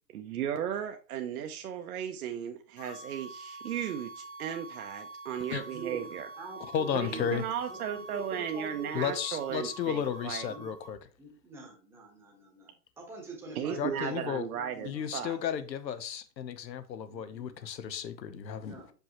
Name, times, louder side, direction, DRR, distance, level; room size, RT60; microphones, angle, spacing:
voice 1, 0.1-6.3 6.9-10.5 13.5-15.4, right 9 dB, 60° right, 0.7 m, -36 dB
sound 1, 2.8-10.9, right 3 dB, 25° left, 0.7 m, -46 dB
voice 2, 5.7-6.1 6.4-7.4 7.7-9.2 10.5-10.7 11.2-15.1 17.1-17.5 18.6-18.9, right 3 dB, 5° right, 1.0 m, -45 dB
voice 3, 6.7-7.4 8.9-11.0 13.8-14.5 14.8-18.8, left 8 dB, 90° left, 1.0 m, -33 dB
5.9 x 5.4 x 2.9 m
hypercardioid pair, 155°, 50 cm